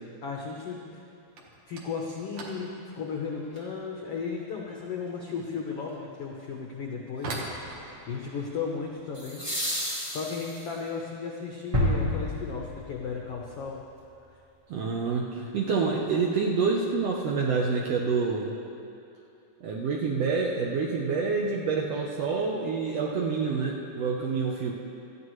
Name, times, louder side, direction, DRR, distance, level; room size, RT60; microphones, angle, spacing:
voice 1, 0.2-1.1 1.7-7.4 7.7-9.4 9.8-13.8, left 5 dB, 85° left, -1 dB, 1.3 m, -35 dB
sound 1, 1.2-12.0 12.3-12.9 13.1-13.5 13.8-13.9 14.6-14.7 15.6-15.8 16.1-16.6, right 2 dB, 60° right, 2.3 m, -45 dB
sound 2, 3.5-3.6 9.1-10.9 13.1-13.2, equal, 15° right, 0.8 m, -34 dB
sound 3, 11.7-13.6, left 1 dB, 40° right, 2.1 m, -28 dB
voice 2, 14.7-18.5 19.6-24.7, right 4 dB, 85° right, -2 dB, 1.4 m, -27 dB
18.5 x 13.5 x 3.2 m, 2.6 s
omnidirectional pair, 4.1 m